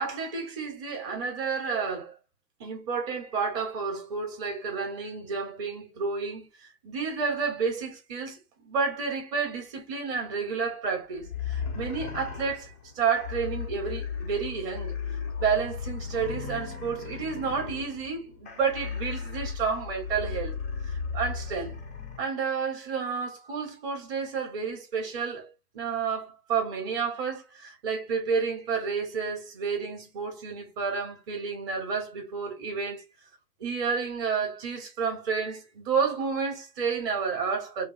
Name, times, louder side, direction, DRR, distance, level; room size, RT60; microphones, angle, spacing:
voice 1, 0.0-2.1 2.6-12.7 13.0-15.0 15.4-20.6 20.8-21.7 22.2-25.5 25.7-33.0 33.6-37.8, right 5 dB, 35° right, 2.4 m, -30 dB
sound 1, 11.2-22.2, left 6 dB, 10° left, 0.3 m, -36 dB
5.1 x 2.3 x 3.7 m
figure-of-eight pair, 115°, 48 cm